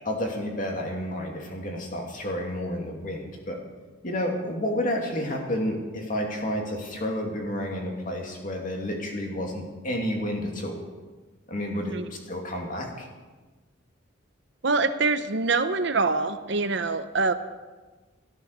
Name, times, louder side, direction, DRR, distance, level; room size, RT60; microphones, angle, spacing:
voice 1, 0.1-3.6 4.0-10.8 11.5-13.1, left 1 dB, 40° left, 1 dB, 2.7 m, -30 dB
voice 2, 14.6-17.3, right 3 dB, 60° right, 10 dB, 0.8 m, -24 dB
13.5 x 13.0 x 6.8 m, 1.3 s
head